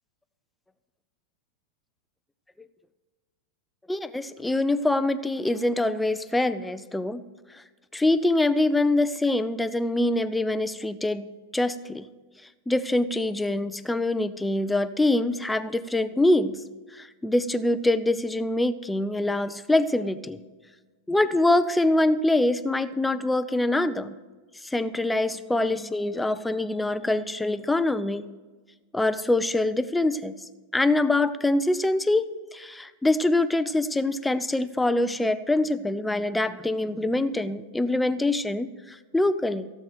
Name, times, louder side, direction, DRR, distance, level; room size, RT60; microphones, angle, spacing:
voice 1, 3.9-7.2 7.5-7.6 7.9-12.1 12.7-16.5 16.9-20.4 21.1-24.1 24.6-28.3 28.9-30.3 30.7-39.7, left 2 dB, 5° left, 11 dB, 0.6 m, -24 dB
16.0 x 7.7 x 5.1 m, 1.3 s
figure-of-eight pair, 90°, 0 cm